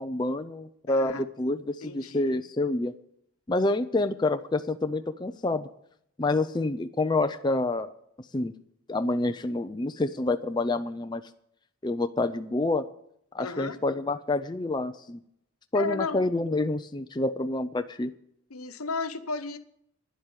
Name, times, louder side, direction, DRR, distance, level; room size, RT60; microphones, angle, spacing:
voice 1, 0.0-2.9 3.5-5.7 6.2-7.9 8.3-8.5 8.9-11.2 11.8-12.9 13.3-15.2 15.7-18.1, left 2 dB, 20° left, 8 dB, 0.4 m, -28 dB
voice 2, 0.9-1.2 1.8-2.2 13.4-13.8 15.7-16.2 18.5-19.6, left 4 dB, 85° left, 10 dB, 1.0 m, -34 dB
10.5 x 7.8 x 9.0 m, 0.72 s
head